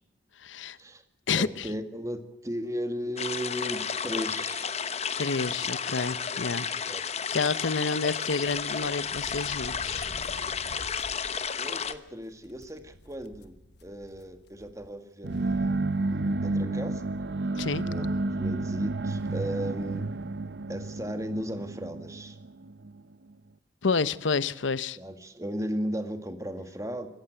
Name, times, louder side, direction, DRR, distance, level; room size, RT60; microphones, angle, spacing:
voice 1, 0.4-0.8 1.3-1.7 5.2-7.0 7.3-10.1 17.6-17.9 23.8-25.0, left 4 dB, 90° left, 0.8 m, -29 dB
voice 2, 1.4-4.8 6.6-7.0 11.6-13.6 13.8-15.8 16.1-17.0 17.9-18.1 18.3-20.1 20.7-22.4 25.0-27.1, equal, 15° right, 2.0 m, -36 dB
sound 1, 3.2-11.9, left 6 dB, 35° left, 1.0 m, -32 dB
sound 2, 8.3-15.0 15.3-15.4 16.5-16.6 16.9-17.2, left 1 dB, 60° left, 1.4 m, -49 dB
sound 3, 15.2-23.0, right 2 dB, 65° right, 0.8 m, -31 dB
25.5 x 14.5 x 7.9 m
head